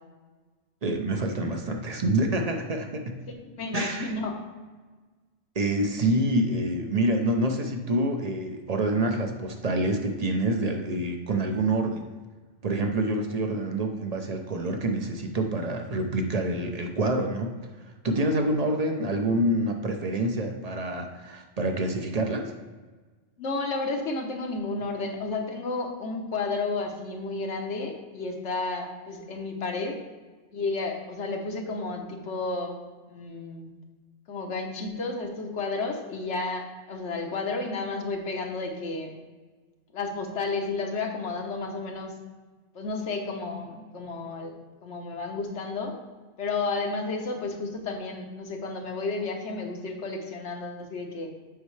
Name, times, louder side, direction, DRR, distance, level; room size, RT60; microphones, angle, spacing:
voice 1, 0.8-3.2 3.7-4.1 5.5-12.1 12.6-17.6 17.8-22.5, right 1 dB, 40° right, 4 dB, 0.7 m, -27 dB
voice 2, 3.4-4.4 23.4-30.0 30.5-32.8 33.1-33.7 34.3-39.1 39.9-42.1 42.7-44.5 44.8-45.9 46.4-51.3, left 3 dB, 75° left, 2 dB, 1.3 m, -32 dB
8.2 x 5.4 x 3.2 m, 1.3 s
omnidirectional pair, 1.2 m